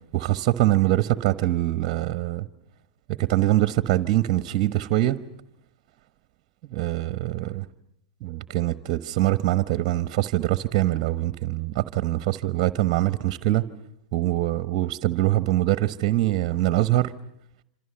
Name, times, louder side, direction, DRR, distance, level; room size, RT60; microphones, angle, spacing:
voice 1, 0.1-2.5 3.1-5.2 6.7-7.7 8.2-13.7 14.1-17.1, right 15 dB, 45° right, 14 dB, 1.1 m, -23 dB
27.0 x 27.0 x 6.9 m, 0.76 s
hypercardioid pair, 105°, 4 cm